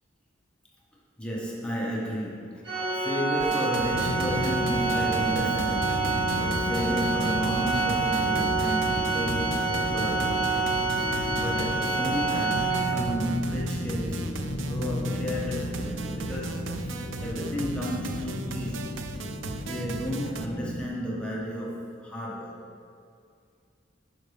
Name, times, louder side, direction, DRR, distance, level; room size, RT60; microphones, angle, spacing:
voice 1, 1.2-9.6 9.9-10.4 11.4-14.3 14.5-19.0 19.7-22.6, equal, 5° left, -5 dB, 1.2 m, -33 dB
Organ, 2.6-13.4, right 4 dB, 65° right, 1.9 m, -27 dB
sound 1, 3.4-20.5, right 4 dB, 85° right, 0.5 m, -39 dB
sound 2, 3.9-20.9, left 1 dB, 65° left, 0.7 m, -33 dB
11.5 x 5.2 x 3.3 m, 2.2 s
head